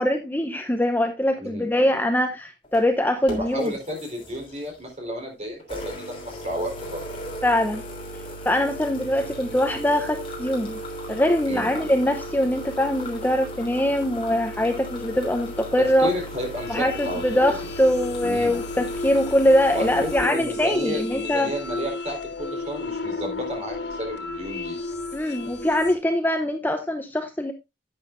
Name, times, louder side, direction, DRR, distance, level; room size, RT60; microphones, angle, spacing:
voice 1, 0.0-3.7 7.4-7.8 8.4-10.8 11.1-16.1 16.7-21.5 25.1-27.5, left 1 dB, 10° left, 6 dB, 0.8 m, -23 dB
sound 1, 2.6-2.8 3.3-4.8 5.6-20.2, equal, 30° left, 3.1 m, -36 dB
voice 2, 3.3-7.0 11.4-11.7 15.8-17.6 18.2-18.6 19.7-24.8, equal, 40° right, 1 dB, 4.1 m, -32 dB
sound 2, 16.5-26.0, left 3 dB, 70° left, 1.4 m, -33 dB
11.0 x 8.7 x 2.5 m, 0.23 s
head